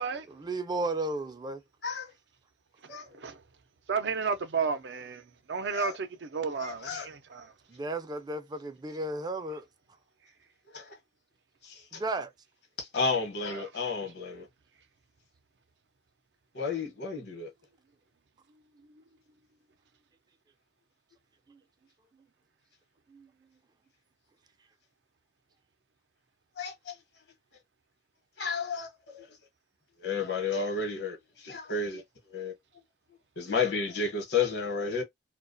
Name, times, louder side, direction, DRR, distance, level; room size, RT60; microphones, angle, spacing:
voice 1, 0.3-1.6 7.7-9.6 11.9-12.3 21.5-21.6 23.1-23.3, right 2 dB, 25° right, 0.4 m, -34 dB
voice 2, 2.8-3.4 3.9-7.5 9.5-9.6 13.4-13.7 18.8-19.0, right 5 dB, 80° right, 0.5 m, -33 dB
voice 3, 6.6-7.1 10.7-11.0 11.6-12.0 12.8-14.5 16.5-17.5 26.6-27.0 28.4-29.3 30.0-32.0 32.3-32.5 33.4-35.0, left 4 dB, 75° left, 0.9 m, -32 dB
2.3 x 2.2 x 2.5 m
head